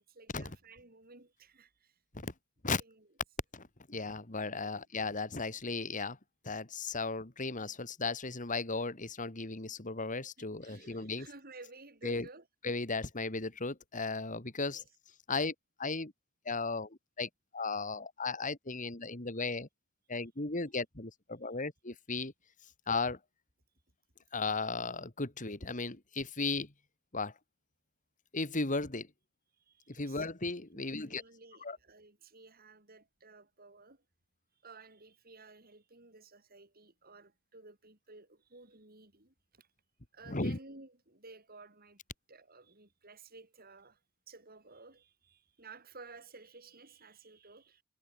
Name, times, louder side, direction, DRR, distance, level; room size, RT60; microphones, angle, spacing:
voice 1, 0.0-1.9 2.7-3.1 4.5-4.7 10.4-12.5 14.7-14.9 29.6-30.3 30.7-34.0 34.6-39.7 40.1-42.0 42.3-44.0 44.3-47.8, right 3 dB, 45° right, 6.8 m, -55 dB
voice 2, 3.5-6.2 6.4-11.3 12.0-12.3 12.6-14.8 15.3-15.5 15.8-16.1 16.5-19.7 20.1-22.3 22.9-23.2 24.3-26.7 27.1-27.3 28.3-29.1 29.9-31.2 31.6-31.8 40.3-40.6, left 3 dB, 40° left, 2.4 m, -36 dB
head